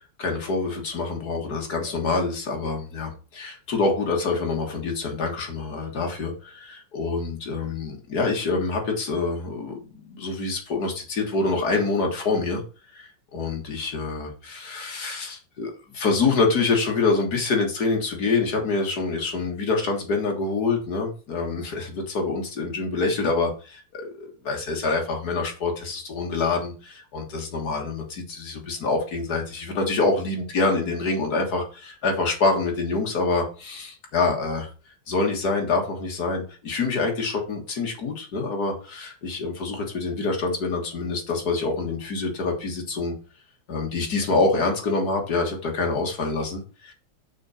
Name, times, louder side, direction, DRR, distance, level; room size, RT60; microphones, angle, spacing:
voice 1, 0.2-12.6 12.9-34.7 35.1-43.1 43.7-46.9, left 3 dB, 50° left, 2 dB, 2.1 m, -26 dB
6.3 x 6.0 x 4.3 m, 0.36 s
omnidirectional pair, 2.3 m